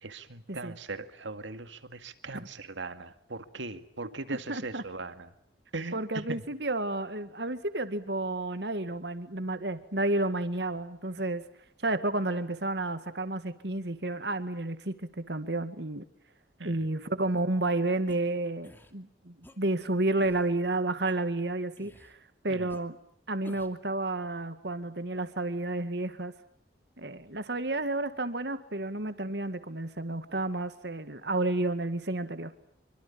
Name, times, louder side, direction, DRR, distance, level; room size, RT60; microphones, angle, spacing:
voice 1, 0.0-5.3 5.7-6.4 16.6-16.9 22.5-22.7 30.3-30.5, right 3 dB, 80° right, 10 dB, 2.2 m, -40 dB
voice 2, 4.5-4.8 5.9-11.4 11.8-16.1 16.6-22.2 22.4-23.0 23.3-26.3 27.0-32.5, right 2 dB, 65° right, 11 dB, 2.0 m, -31 dB
sound 1, 18.1-18.2 18.6-18.9 19.4-19.6 20.2-20.5 21.1-21.2 21.8-22.1 22.7-22.8 23.4-23.8, equal, 10° left, 2.4 m, -51 dB
27.0 x 24.5 x 8.8 m, 0.64 s
head